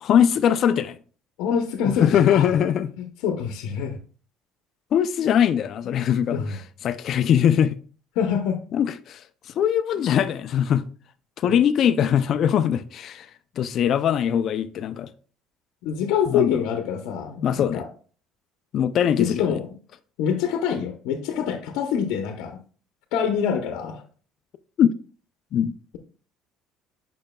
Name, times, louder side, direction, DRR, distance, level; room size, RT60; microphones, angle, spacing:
voice 1, 0.0-1.0 1.9-2.9 4.9-7.8 8.7-10.9 11.4-13.3 13.6-15.1 16.3-16.6 17.4-17.8 18.7-19.6 24.8-25.0 25.5-25.7, left 9 dB, 45° left, 0.3 m, -21 dB
voice 2, 1.4-2.5 3.0-4.0 6.3-6.6 8.2-8.6 11.4-11.6 15.8-17.9 19.2-19.7 20.2-22.6 23.1-24.0, left 7 dB, 80° left, 0.7 m, -25 dB
8.8 x 5.6 x 2.2 m
cardioid pair, 150°, 0 cm